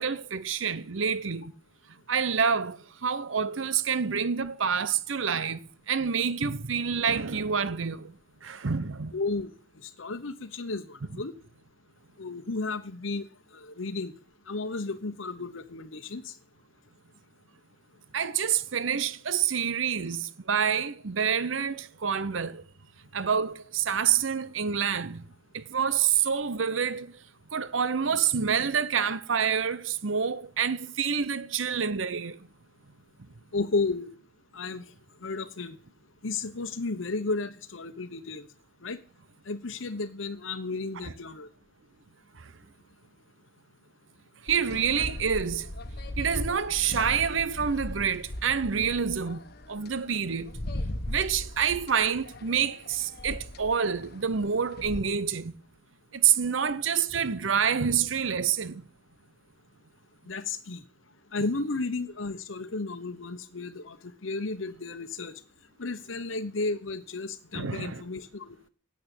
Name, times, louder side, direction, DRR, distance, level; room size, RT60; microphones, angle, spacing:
voice 1, 0.0-1.5 2.1-5.6 5.9-8.1 8.4-9.1 11.1-11.2 18.1-22.6 23.1-25.2 25.5-27.1 27.5-32.4 42.4-42.5 44.4-45.7 46.2-49.4 49.7-50.5 51.1-55.5 56.1-58.8 67.5-68.0, right 7 dB, 80° right, 0.8 m, -27 dB
voice 2, 9.1-9.5 9.8-11.3 12.2-13.3 13.5-14.1 14.5-16.3 33.5-34.1 34.5-34.8 35.2-35.8 36.2-38.5 38.8-39.0 39.5-41.5 60.3-60.8 61.3-64.0 64.2-65.3 65.8-68.7, left 3 dB, 90° left, 1.0 m, -33 dB
sound 1, 44.5-55.0, left 1 dB, 55° left, 1.4 m, -38 dB
13.0 x 8.5 x 8.4 m
head